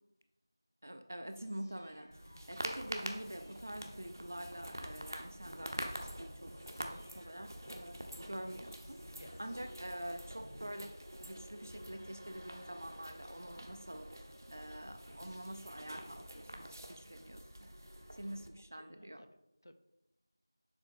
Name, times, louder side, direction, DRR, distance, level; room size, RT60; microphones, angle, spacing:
voice 1, 0.8-17.7 18.1-19.2, right 1 dB, 35° right, 8 dB, 0.4 m, -46 dB
sound 1, 1.3-4.6 6.4-11.7 15.0-17.7, equal, 35° left, 1.0 m, -63 dB
sound 2, 2.1-18.5, equal, 50° right, 0.8 m, -47 dB
voice 2, 9.2-9.6 18.7-19.7, left 1 dB, 55° left, 10 dB, 0.5 m, -58 dB
6.8 x 3.7 x 4.3 m, 0.93 s
figure-of-eight pair, 175°, 2 cm